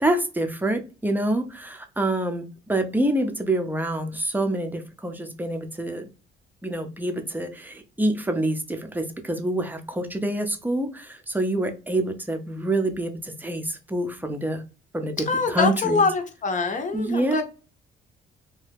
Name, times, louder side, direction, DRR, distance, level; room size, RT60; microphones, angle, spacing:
voice 1, 0.0-6.1 6.6-14.6 14.9-16.0 16.9-17.4, right 1 dB, 10° right, 0.6 m, -26 dB
voice 2, 15.3-17.4, left 4 dB, 40° left, 0.8 m, -24 dB
2.7 x 2.3 x 3.4 m
cardioid pair, 90°, 20 cm